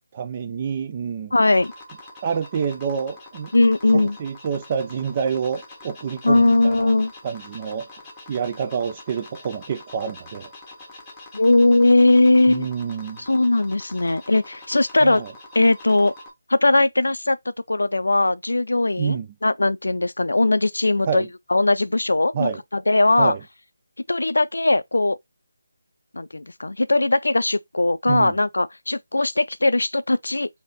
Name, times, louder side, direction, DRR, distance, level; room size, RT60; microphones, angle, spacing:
voice 1, 0.1-1.4 2.2-3.5 3.9-6.9 7.2-7.9 8.3-10.5 12.5-13.2 15.0-15.3 19.0-19.3 21.0-21.3 22.3-22.6 23.2-23.4 28.1-28.3, right 6 dB, 30° right, 0.5 m, -27 dB
voice 2, 1.3-1.7 3.5-4.2 6.2-7.1 11.3-12.7 13.3-15.2 15.5-16.1 16.5-17.4 17.7-19.2 19.4-21.2 21.5-23.4 24.1-25.2 26.1-30.5, left 2 dB, 85° left, 0.4 m, -19 dB
sound 1, 1.4-16.3, left 2 dB, 15° left, 1.1 m, -44 dB
3.3 x 2.8 x 4.0 m
figure-of-eight pair, 160°, 0 cm